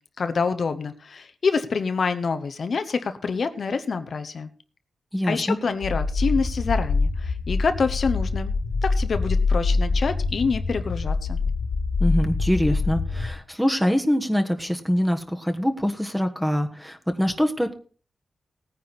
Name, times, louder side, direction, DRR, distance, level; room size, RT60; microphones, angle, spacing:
voice 1, 0.2-4.5 5.3-8.5 8.8-11.4, left 5 dB, 55° left, 9 dB, 0.9 m, -26 dB
voice 2, 5.1-5.6 12.0-17.7, equal, ahead, 6 dB, 1.4 m, -24 dB
sound 1, 5.8-13.3, left 3 dB, 85° left, 1.7 m, -25 dB
18.0 x 9.6 x 4.1 m, 0.40 s
wide cardioid pair, 140°, 0 cm